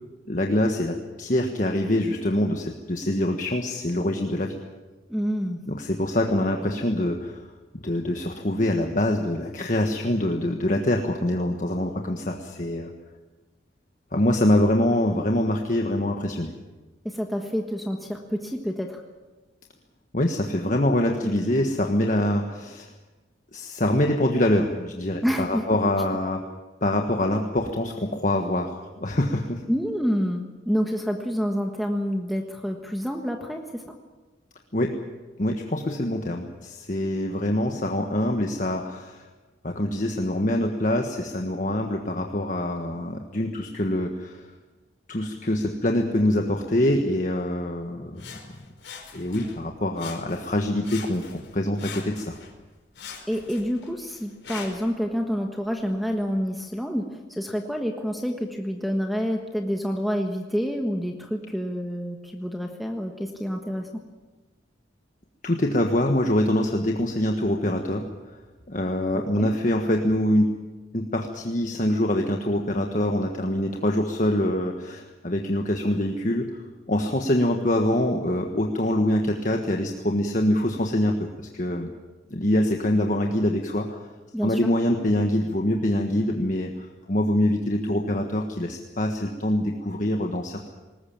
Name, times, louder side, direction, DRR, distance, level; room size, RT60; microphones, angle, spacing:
voice 1, 0.3-4.6 5.7-7.4 7.7-12.9 14.1-16.5 20.1-22.9 23.5-26.5 26.8-29.6 34.7-35.0 35.4-39.3 39.6-44.5 45.1-48.2 49.1-52.4 65.4-68.4 68.7-70.5 70.9-76.5 76.9-81.9 82.3-84.0 84.4-90.7, left 1 dB, 40° left, 3 dB, 1.5 m, -24 dB
voice 2, 5.1-5.6 17.0-19.0 21.2-21.3 25.2-25.7 29.7-33.9 53.3-64.0 69.3-69.5 84.3-84.7, equal, ahead, 3 dB, 1.4 m, -28 dB
Sawing, 48.2-49.6 49.9-50.6 50.8-52.5 52.9-54.9 55.6-55.7, left 6 dB, 70° left, 4.9 m, -42 dB
20.0 x 19.5 x 8.8 m, 1.2 s
head